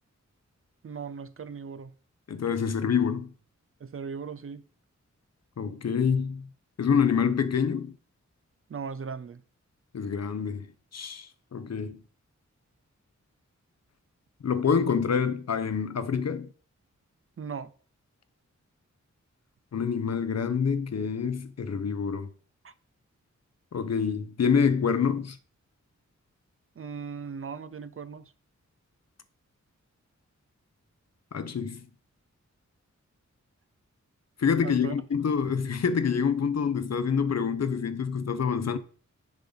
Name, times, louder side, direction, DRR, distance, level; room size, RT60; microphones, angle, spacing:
voice 1, 0.8-1.9 3.8-4.7 8.7-9.4 17.4-17.7 22.6-22.7 26.8-28.3 34.6-34.9, right 6 dB, 50° right, 0.5 m, -38 dB
voice 2, 2.3-3.3 5.6-6.5 6.8-8.0 9.9-12.0 14.4-16.5 19.7-22.3 23.7-25.4 31.3-31.9 34.4-38.8, left 6 dB, 60° left, 0.7 m, -27 dB
7.2 x 5.4 x 3.9 m
wide cardioid pair, 90°, 30 cm